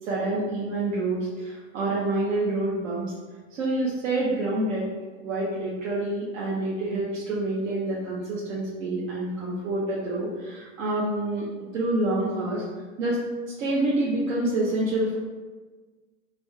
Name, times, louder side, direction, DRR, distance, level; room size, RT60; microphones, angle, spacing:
voice 1, 0.0-3.1 3.5-4.9 5.2-11.5 11.7-12.6 13.0-13.2 13.5-15.2, right 2 dB, 70° right, -6 dB, 1.0 m, -27 dB
3.9 x 2.3 x 4.6 m, 1.3 s
supercardioid pair, 140°, 40 cm